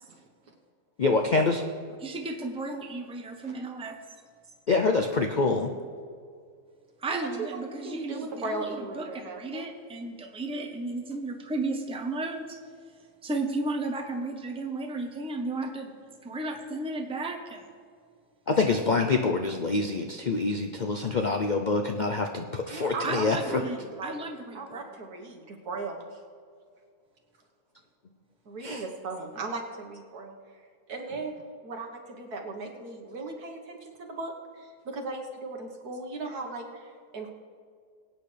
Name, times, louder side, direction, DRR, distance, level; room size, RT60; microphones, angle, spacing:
voice 1, 1.0-1.6 4.7-5.7 18.5-23.4 28.6-28.8, left 3 dB, 90° left, 4 dB, 0.4 m, -26 dB
voice 2, 2.0-4.0 7.0-12.6 13.2-15.9 16.2-17.7 23.0-25.0, right 2 dB, 5° right, 3 dB, 0.7 m, -34 dB
voice 3, 7.2-7.6 7.8-9.7 22.7-24.2 24.5-26.0 28.5-30.3 30.9-37.3, right 3 dB, 70° right, 1 dB, 1.9 m, -37 dB
22.5 x 9.0 x 3.3 m, 2.1 s
omnidirectional pair, 1.7 m